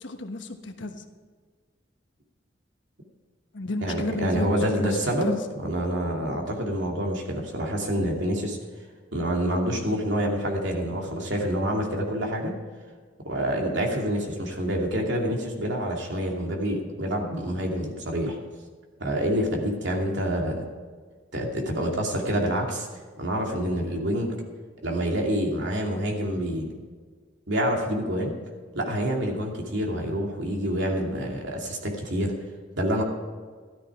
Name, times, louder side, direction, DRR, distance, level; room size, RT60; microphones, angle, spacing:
voice 1, 0.0-1.0 3.5-5.0 5.2-5.4, left 2 dB, 80° left, 6 dB, 1.2 m, -32 dB
voice 2, 3.8-8.6 9.1-12.5 13.2-18.4 19.0-20.6 21.3-22.9 23.2-24.3 24.8-26.8 27.5-28.3 28.7-32.3 32.8-33.0, equal, 70° right, 0 dB, 2.6 m, -27 dB
13.5 x 12.5 x 4.9 m, 1.5 s
head